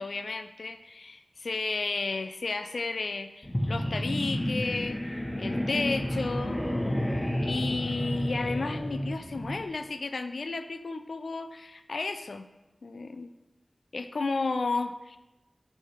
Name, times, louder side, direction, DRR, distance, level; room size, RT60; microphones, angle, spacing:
voice 1, 0.0-5.0 5.4-6.6 7.4-12.5 12.8-13.3 13.9-15.2, left 3 dB, 85° left, 9 dB, 0.3 m, -33 dB
sound 1, 3.4-9.6, equal, 25° left, 0.9 m, -31 dB
6.5 x 3.2 x 4.6 m, 1.0 s
cardioid pair, 40°, 0 cm